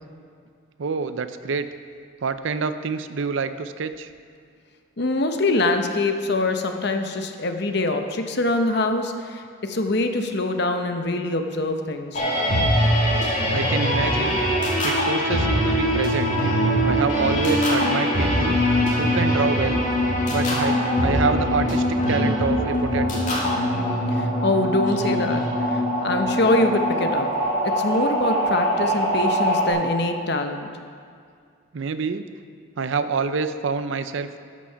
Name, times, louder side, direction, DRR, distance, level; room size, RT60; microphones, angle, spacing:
voice 1, 0.8-1.7 2.2-4.1 13.5-14.4 14.8-16.3 16.8-18.6 19.0-19.8 20.3-23.2 31.7-32.2 32.8-34.3, right 5 dB, 65° right, 11 dB, 0.5 m, -26 dB
voice 2, 5.0-12.2 24.1-27.3 27.6-30.7, left 2 dB, 55° left, 6 dB, 0.8 m, -24 dB
sound 1, 12.1-29.7, equal, 35° left, 2.2 m, -22 dB
13.5 x 6.2 x 5.6 m, 2.2 s
head